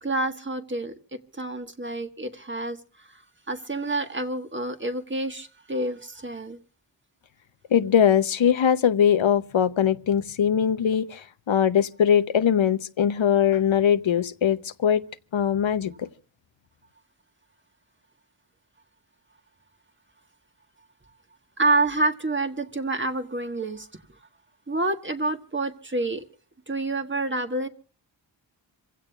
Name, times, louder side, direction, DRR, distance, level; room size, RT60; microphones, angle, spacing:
voice 1, 0.0-2.8 3.5-6.6 21.6-23.9 24.7-26.2 26.7-27.7, right 2 dB, 25° right, 1.6 m, -28 dB
voice 2, 7.7-15.0 15.3-16.1, left 8 dB, 85° left, 0.9 m, -21 dB
27.0 x 16.0 x 2.4 m
wide cardioid pair, 85°, 46 cm